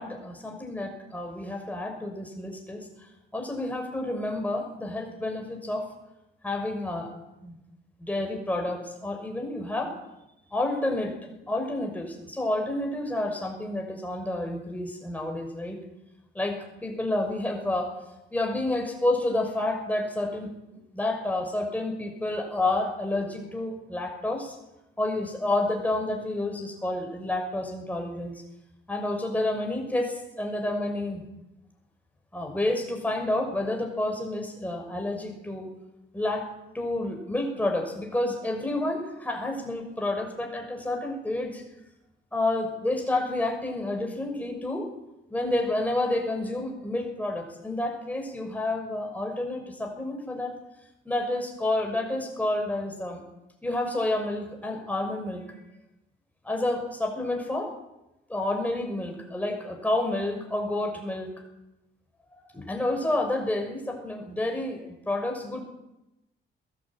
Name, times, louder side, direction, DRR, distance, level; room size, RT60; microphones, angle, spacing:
voice 1, 0.0-2.9 3.3-5.8 6.4-7.1 7.4-7.6 8.0-9.9 10.5-11.1 11.5-15.8 16.3-17.9 18.3-20.5 20.9-24.6 25.0-28.4 28.9-31.2 32.3-35.7 36.1-36.5 36.7-41.6 42.3-44.9 45.3-50.5 51.0-53.2 53.6-55.6 56.4-57.7 58.3-61.3 62.3-65.6, left 2 dB, 10° left, 2 dB, 6.3 m, -29 dB
21.0 x 19.0 x 9.1 m, 0.92 s
cardioid pair, 145°, 20 cm